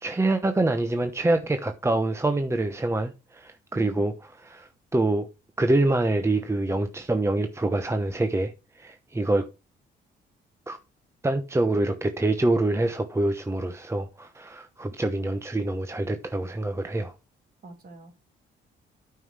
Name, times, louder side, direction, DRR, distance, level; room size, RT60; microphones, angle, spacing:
voice 1, 0.0-5.3 5.6-9.5 10.7-10.8 11.2-17.1, right 2 dB, 15° right, 1.0 m, -26 dB
voice 2, 3.7-4.0 17.6-18.1, right 3 dB, 45° right, 3.2 m, -44 dB
9.1 x 5.8 x 4.8 m
cardioid pair, 90°, 20 cm